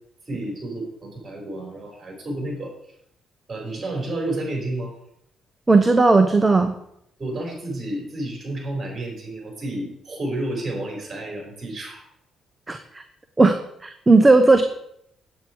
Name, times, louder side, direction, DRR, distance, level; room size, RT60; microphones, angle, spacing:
voice 1, 0.3-2.7 3.5-4.9 7.2-12.0, right 1 dB, 35° right, 0 dB, 4.8 m, -30 dB
voice 2, 5.7-6.7 12.7-13.0 13.4-14.6, right 3 dB, 20° right, 7 dB, 0.8 m, -16 dB
8.6 x 8.5 x 4.6 m, 0.75 s
cardioid pair, 90°, 0 cm